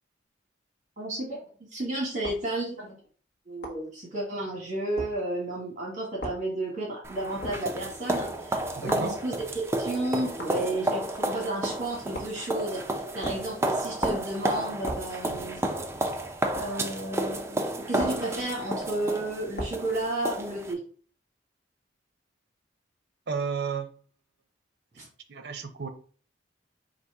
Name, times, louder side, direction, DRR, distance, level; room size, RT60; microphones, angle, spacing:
voice 1, 1.0-3.0 3.4-9.4 9.8-15.6 16.5-20.8 25.0-25.1, right 1 dB, 40° right, 1.4 m, -32 dB
sound 1, 2.2-2.5 3.6-3.8 5.0-5.1 6.2-6.4 7.4-7.6 8.9-9.1 10.4-10.6 12.1-12.4 13.2-13.5 14.0-14.3 14.9-15.1 16.6-16.7 18.0-18.3 19.6-19.8, equal, 60° left, 1.2 m, -36 dB
sound 2, 7.0-20.7, right 1 dB, 15° right, 0.4 m, -31 dB
voice 2, 8.8-9.2 23.3-23.9 25.3-25.9, right 5 dB, 60° right, 0.6 m, -32 dB
4.1 x 2.6 x 4.7 m
head